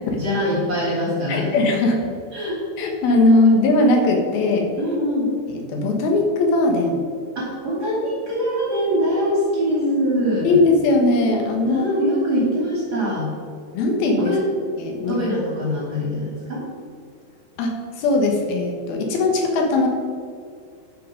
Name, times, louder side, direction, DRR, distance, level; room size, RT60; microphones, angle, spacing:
voice 1, 0.2-1.5 2.3-2.6 4.8-5.3 7.3-10.6 11.6-13.3 14.2-14.4 15.0-16.6, equal, 25° right, -5 dB, 2.4 m, -23 dB
voice 2, 1.3-2.0 2.8-4.7 5.7-7.0 10.4-11.9 13.7-14.3 14.8-15.3 17.6-19.9, left 2 dB, 65° left, 2 dB, 2.7 m, -19 dB
13.5 x 5.8 x 5.1 m, 2.2 s
omnidirectional pair, 5.5 m